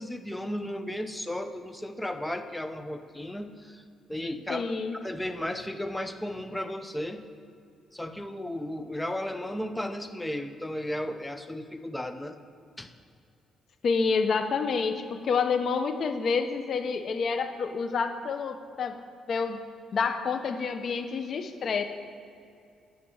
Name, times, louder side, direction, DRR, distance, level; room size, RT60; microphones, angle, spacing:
voice 1, 0.0-3.8 4.1-4.6 5.0-7.3 7.9-12.4 12.8-12.9, left 1 dB, 10° left, 8 dB, 0.7 m, -34 dB
voice 2, 4.5-5.0 13.8-18.9 19.3-19.6 19.9-21.8, left 5 dB, 55° left, 7 dB, 0.9 m, -28 dB
8.7 x 6.1 x 8.2 m, 2.5 s
cardioid pair, 90°, 0 cm